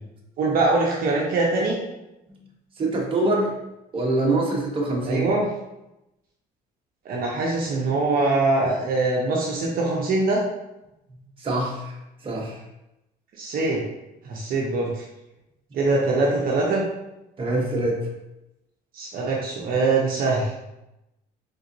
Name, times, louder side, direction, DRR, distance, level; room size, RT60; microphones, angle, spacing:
voice 1, 0.4-1.8 5.1-5.5 7.0-10.4 13.4-13.8 14.2-15.0 15.7-16.8 18.9-20.5, right 3 dB, 60° right, -2 dB, 0.8 m, -23 dB
voice 2, 2.8-3.5 3.9-5.2 11.4-11.9 12.2-12.5 17.4-18.0, right 2 dB, 30° right, -1 dB, 1.1 m, -24 dB
4.1 x 3.7 x 2.7 m, 0.92 s
cardioid pair, 110°, 17 cm